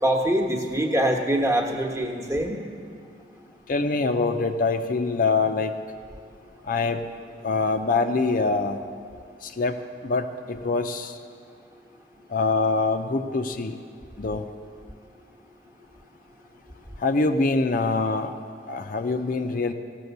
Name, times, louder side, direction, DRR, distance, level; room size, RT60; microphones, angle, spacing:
voice 1, 0.0-2.6, right 1 dB, 15° right, 1 dB, 1.1 m, -24 dB
voice 2, 3.7-5.7 6.6-7.1 7.4-8.8 9.4-11.2 12.3-13.8 14.2-14.5 17.0-18.3 18.7-19.7, left 3 dB, 50° left, 7 dB, 0.5 m, -24 dB
15.5 x 6.2 x 8.0 m, 2.2 s
head